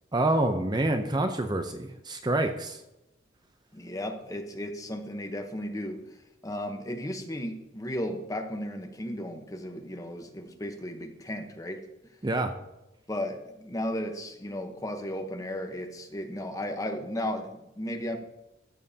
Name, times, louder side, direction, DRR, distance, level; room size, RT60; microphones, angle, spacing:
voice 1, 0.1-2.8 12.2-12.5, right 2 dB, 20° right, 6 dB, 0.6 m, -27 dB
voice 2, 3.7-6.2 6.4-11.8 13.1-18.2, left 1 dB, 20° left, 5 dB, 1.0 m, -35 dB
14.0 x 7.4 x 2.8 m, 0.89 s
head